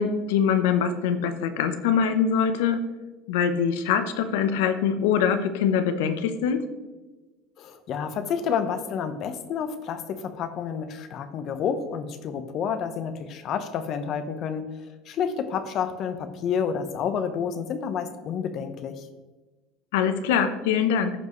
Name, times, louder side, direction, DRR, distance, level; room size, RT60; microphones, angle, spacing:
voice 1, 0.0-2.8 3.3-6.6 19.9-21.1, left 7 dB, 80° left, 10 dB, 0.8 m, -23 dB
voice 2, 7.6-14.7 15.1-19.1, left 7 dB, 50° left, 10 dB, 0.9 m, -29 dB
14.5 x 5.4 x 3.1 m, 1.2 s
supercardioid pair, 100°, 0 cm